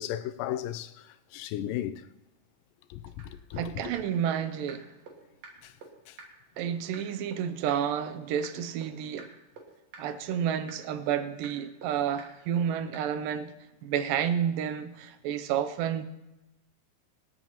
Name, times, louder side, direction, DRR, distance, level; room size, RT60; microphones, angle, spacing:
voice 1, 0.0-2.1 2.9-3.9 5.6-5.7 6.1-6.2, left 12 dB, 80° left, 2.1 m, -36 dB
sound 1, 3.2-3.3 3.6-3.7 3.9-4.0 4.3-4.4 4.7-4.8 5.1-5.2 5.4-5.5 5.8-5.9 6.2-6.3 6.6-6.7 6.9-7.0 7.3-7.4 7.7-7.8 8.1-8.2 8.4-8.5 8.8-8.9 9.2-9.3 9.6-9.7 9.9-10.0 10.3-10.4 10.7-10.8 11.1-11.2 11.4-11.5 11.8-11.9 12.2-12.3 12.6-12.7 12.9-13.0, right 5 dB, 55° right, 2.7 m, -45 dB
voice 2, 3.6-4.9 6.6-9.3 10.0-13.5 13.8-16.0, right 9 dB, 80° right, 2.2 m, -30 dB
26.0 x 8.9 x 2.9 m
omnidirectional pair, 4.1 m